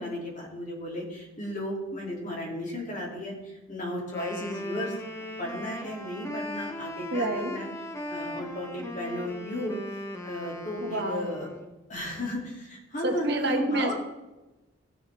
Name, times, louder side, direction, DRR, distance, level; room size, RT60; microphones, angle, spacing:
voice 1, 0.0-5.0 5.4-7.7 8.0-9.8 10.2-11.5 11.9-13.9, left 1 dB, 35° left, -3 dB, 2.7 m, -34 dB
Wind instrument woodwind instrument, 4.0-11.8, left 1 dB, 15° left, 0.8 m, -38 dB
voice 2, 7.1-7.5 10.8-11.3 13.0-13.9, right 1 dB, 50° right, 3 dB, 1.2 m, -28 dB
17.0 x 6.4 x 3.5 m, 1.1 s
head